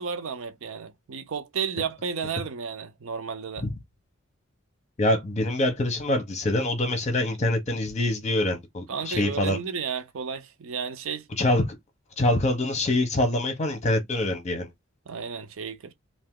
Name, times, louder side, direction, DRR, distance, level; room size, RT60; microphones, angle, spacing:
voice 1, 0.0-3.7 8.9-11.3 15.1-15.9, right 6 dB, 65° right, 0.5 m, -33 dB
voice 2, 5.0-9.6 11.4-11.6 12.2-14.7, left 1 dB, 30° left, 1.0 m, -25 dB
2.8 x 2.6 x 3.6 m
head